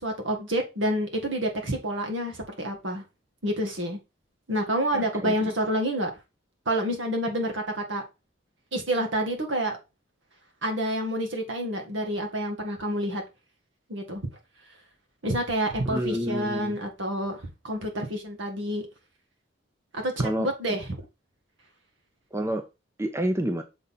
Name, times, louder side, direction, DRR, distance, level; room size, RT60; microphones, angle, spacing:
voice 1, 0.0-3.0 3.4-4.0 4.5-6.1 6.7-8.0 8.7-9.8 10.6-13.2 13.9-14.2 15.2-18.9 19.9-20.9, right 1 dB, 70° right, 1.8 m, -28 dB
voice 2, 4.9-5.3 15.9-16.8 20.2-20.5 22.3-22.6 23.0-23.6, right 1 dB, 15° right, 0.6 m, -28 dB
6.8 x 3.8 x 4.1 m
head